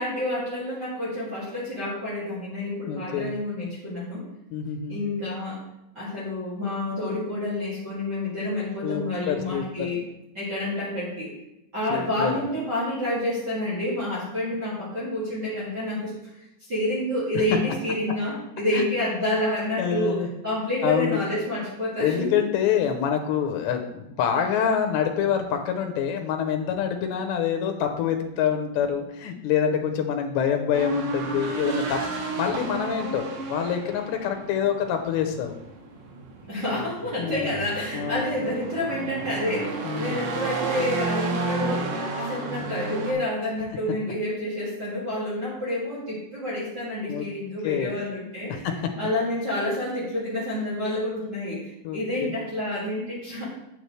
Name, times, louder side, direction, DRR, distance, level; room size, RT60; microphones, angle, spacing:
voice 1, 0.0-4.3 4.9-5.6 5.9-10.0 10.3-11.3 11.7-22.3 36.5-41.9 42.1-48.7 49.0-53.4, left 1 dB, 30° right, -7 dB, 2.2 m, -29 dB
voice 2, 2.8-3.3 4.5-5.0 8.8-9.6 11.9-12.3 18.7-18.8 19.8-20.3 20.8-21.2 22.0-35.5 37.2-37.6 37.9-38.3 39.8-40.3 47.1-47.3 47.6-47.9 48.6-48.7 51.8-52.3, left 8 dB, 85° left, 5 dB, 3.0 m, -26 dB
sound 1, 30.7-43.1, right 3 dB, 85° right, 3.4 m, -32 dB
9.4 x 6.8 x 3.2 m, 0.87 s
omnidirectional pair, 4.9 m